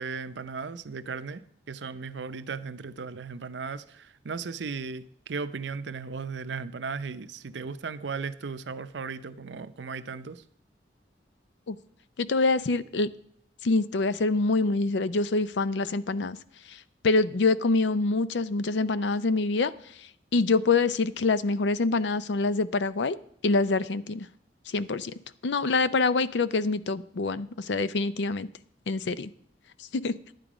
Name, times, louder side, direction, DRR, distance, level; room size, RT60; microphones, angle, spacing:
voice 1, 0.0-10.4, right 5 dB, 80° right, 0.6 m, -36 dB
voice 2, 12.2-13.1 13.6-16.4 16.7-19.7 20.0-23.2 23.4-24.3 24.7-25.1 25.4-28.5 28.9-29.3 29.8-30.2, left 3 dB, 75° left, 0.5 m, -25 dB
12.0 x 9.1 x 5.0 m
head